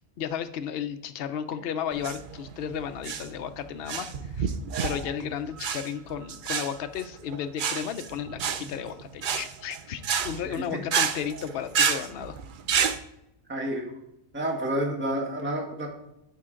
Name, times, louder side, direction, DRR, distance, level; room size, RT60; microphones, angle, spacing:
voice 1, 0.2-4.5 4.8-12.4, left 8 dB, 55° left, 9 dB, 0.7 m, -34 dB
sound 1, 1.9-13.0, right 6 dB, 65° right, 0.5 m, -30 dB
voice 2, 10.5-10.8 13.5-13.9 14.3-15.9, right 1 dB, 10° right, 1 dB, 1.2 m, -29 dB
9.5 x 7.6 x 3.7 m, 0.84 s
omnidirectional pair, 1.5 m